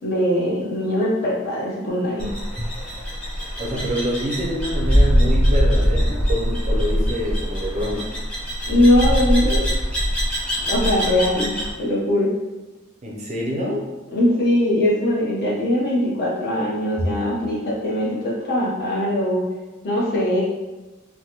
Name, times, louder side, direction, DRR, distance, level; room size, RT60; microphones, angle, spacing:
voice 1, 0.0-2.3 8.7-9.6 10.6-11.5 11.8-12.3 14.1-19.4 19.8-20.4, left 1 dB, 50° left, -5 dB, 0.8 m, -21 dB
sound 1, 2.2-11.7, equal, 5° left, 0.7 m, -22 dB
voice 2, 3.6-8.1 13.0-13.8, equal, 35° right, -2 dB, 0.5 m, -26 dB
3.3 x 2.1 x 2.8 m, 1.1 s
head